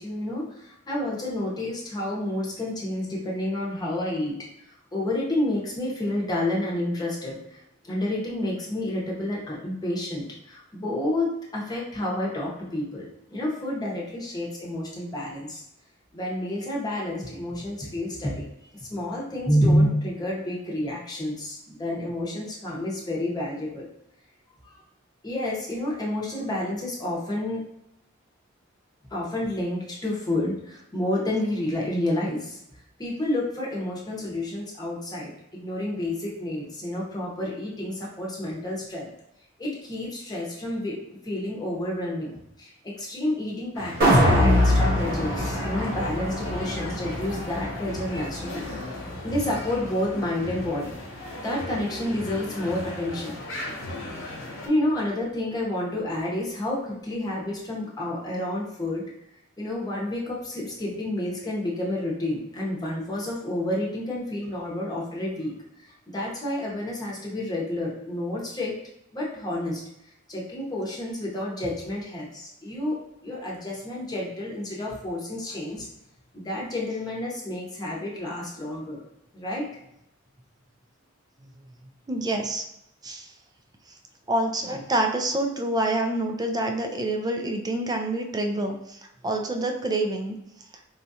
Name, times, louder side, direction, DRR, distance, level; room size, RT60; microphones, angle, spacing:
voice 1, 0.0-4.4 4.9-15.6 16.1-18.5 18.7-23.9 24.6-24.8 25.2-27.6 29.1-32.6 33.0-39.1 39.6-41.0 41.2-50.9 51.4-53.4 54.2-54.4 54.6-59.0 59.6-65.5 65.8-68.7 69.1-69.8 70.3-75.9 76.3-79.0 79.3-79.7, left 1 dB, 20° left, -4 dB, 0.9 m, -29 dB
sound 1, 43.7-54.7, left 2 dB, 75° left, 0.8 m, -37 dB
sound 2, 44.0-50.2 50.6-50.7, equal, 50° right, 0.9 m, -24 dB
voice 2, 82.1-82.6 83.0-83.3 83.9-84.0 84.3-90.4, right 1 dB, 20° right, 4 dB, 0.4 m, -27 dB
4.3 x 2.4 x 2.7 m, 0.80 s
head